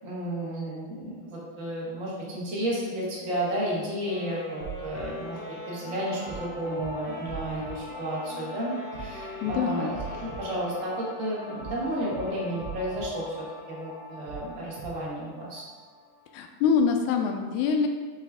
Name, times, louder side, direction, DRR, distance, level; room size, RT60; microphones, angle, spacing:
voice 1, 0.0-5.4 5.7-8.7 9.0-9.9 10.2-15.6, right 1 dB, 50° right, -6 dB, 0.9 m, -32 dB
Wind instrument woodwind instrument, 4.0-11.2, left 1 dB, 40° left, 1.1 m, -42 dB
sound 1, 4.6-5.0 6.3-6.5 6.8-6.9 7.3-7.7 8.9-9.1 9.4-9.5 9.9-10.4 11.6-11.8 12.1-12.2 12.6-13.0 14.3-14.5 14.8-14.9, right 7 dB, 70° right, 3.4 m, -40 dB
sound 2, 5.3-16.4, left 2 dB, 90° right, 2.9 m, -44 dB
voice 2, 9.4-9.9 16.3-17.9, left 6 dB, 80° left, 4 dB, 1.9 m, -24 dB
8.4 x 3.2 x 3.5 m, 1.5 s
omnidirectional pair, 3.6 m